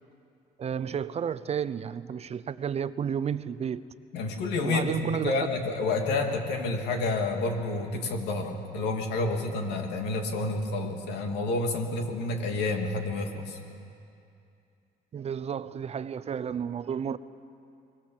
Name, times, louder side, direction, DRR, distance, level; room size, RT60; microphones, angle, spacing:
voice 1, 0.6-3.8 4.6-5.5 15.1-17.2, right 8 dB, 40° right, 0.7 m, -32 dB
voice 2, 4.1-13.6, left 3 dB, 85° left, 2.9 m, -29 dB
25.0 x 22.5 x 7.5 m
cardioid pair, 110°, 17 cm